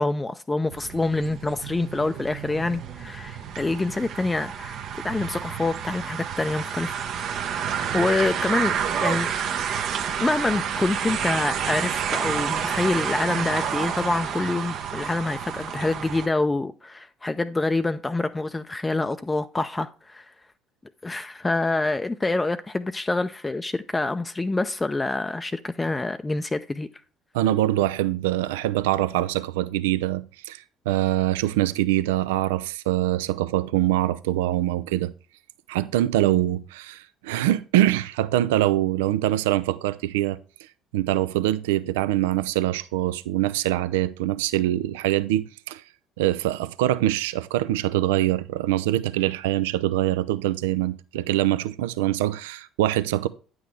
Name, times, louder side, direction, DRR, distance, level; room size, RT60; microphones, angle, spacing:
voice 1, 0.0-7.0 7.9-8.7 9.0-9.3 10.2-20.3 21.0-26.9, left 2 dB, 20° left, 0.4 m, -26 dB
sound 1, 0.7-16.3, right 7 dB, 60° right, 0.8 m, -29 dB
voice 2, 27.3-35.1 35.7-40.4 40.9-45.8 46.2-53.3, right 14 dB, 80° right, 0.3 m, -24 dB
9.2 x 6.1 x 3.2 m
hypercardioid pair, 65°, 0 cm